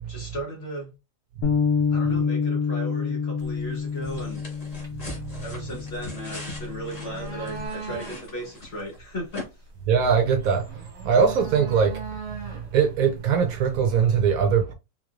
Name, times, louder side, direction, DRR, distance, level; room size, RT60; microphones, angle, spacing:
voice 1, 0.1-0.9 1.9-4.4 5.4-9.5, equal, 45° left, 1.1 m, -36 dB
Bass guitar, 1.4-7.7, left 6 dB, 65° left, 1.4 m, -28 dB
sound 1, 3.4-14.2, right 4 dB, 50° right, 1.1 m, -41 dB
sound 2, 4.0-9.0 9.3-9.4, left 2 dB, 25° left, 1.3 m, -41 dB
voice 2, 9.9-10.7 11.0-12.0 12.7-14.7, right 6 dB, 70° right, 0.9 m, -21 dB
3.7 x 3.1 x 2.4 m
omnidirectional pair, 1.7 m